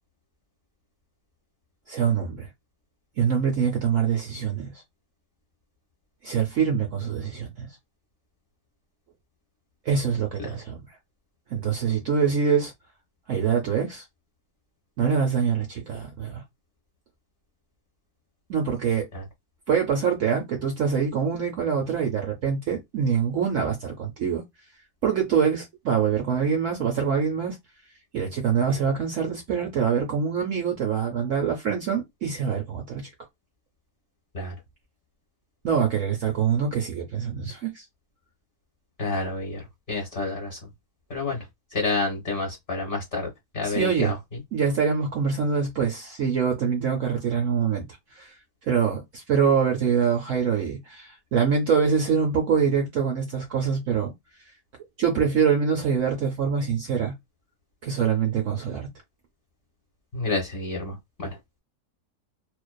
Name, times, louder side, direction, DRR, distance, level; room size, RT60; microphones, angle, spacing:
voice 1, 1.9-2.5 3.2-4.7 6.2-7.7 9.9-10.8 11.5-12.7 13.3-14.0 15.0-16.4 18.5-19.1 19.7-24.4 25.0-27.6 28.1-33.1 35.6-37.8 43.6-44.1 44.5-47.9 48.1-48.3 48.7-54.1 55.0-57.1 57.8-58.9, right 6 dB, 65° right, 0.8 m, -24 dB
voice 2, 39.0-40.6 41.1-41.4 41.7-43.3 43.5-44.1 60.1-61.4, left 3 dB, 45° left, 0.7 m, -29 dB
2.5 x 2.3 x 2.2 m
omnidirectional pair, 1.8 m